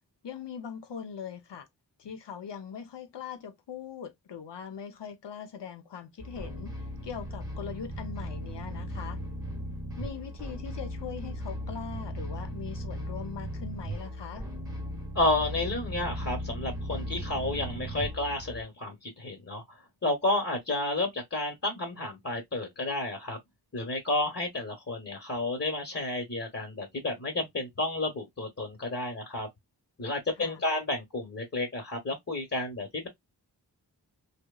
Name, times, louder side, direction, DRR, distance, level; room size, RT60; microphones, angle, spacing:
voice 1, 0.2-1.7 2.0-9.2 10.0-14.5 30.4-30.6, left 7 dB, 85° left, 0.7 m, -41 dB
sound 1, 6.2-18.6, equal, 10° right, 0.9 m, -37 dB
voice 2, 15.1-19.6 20.0-23.4 23.7-29.5 30.0-33.1, left 2 dB, 35° left, 1.0 m, -31 dB
2.9 x 2.1 x 2.2 m
wide cardioid pair, 65°, 41 cm